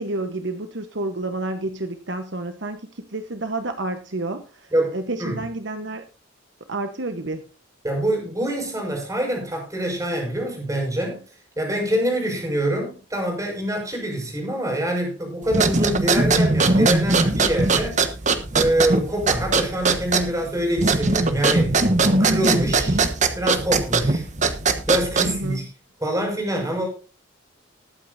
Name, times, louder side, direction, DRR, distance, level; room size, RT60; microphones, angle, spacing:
voice 1, 0.0-6.1 6.7-7.5 25.3-25.6, right 2 dB, 65° right, 8 dB, 1.1 m, -30 dB
voice 2, 4.7-5.4 7.8-11.2 11.6-18.0 18.5-21.8 22.2-23.0 23.3-24.3 24.9-25.7 26.0-26.9, right 1 dB, 15° right, 1 dB, 5.8 m, -25 dB
sound 1, 15.5-25.5, right 3 dB, 40° right, 1.3 m, -20 dB
20.5 x 9.1 x 2.7 m, 0.35 s
head